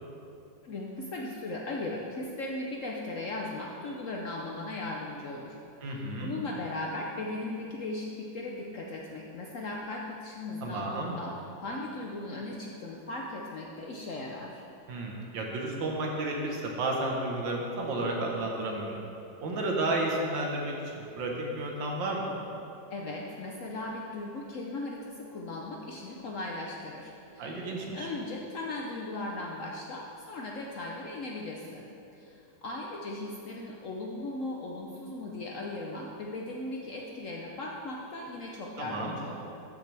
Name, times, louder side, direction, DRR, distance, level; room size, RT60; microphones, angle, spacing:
voice 1, 0.6-5.6 6.2-14.6 22.9-27.5 27.9-31.9 32.1-39.5, left 2 dB, 65° left, -1 dB, 0.8 m, -38 dB
voice 2, 5.8-6.3 10.6-11.2 14.9-19.0 19.4-21.3 21.6-22.3 27.4-28.1 38.8-39.2, right 2 dB, 80° right, -1 dB, 1.9 m, -32 dB
13.5 x 6.1 x 3.3 m, 2.7 s
omnidirectional pair, 2.0 m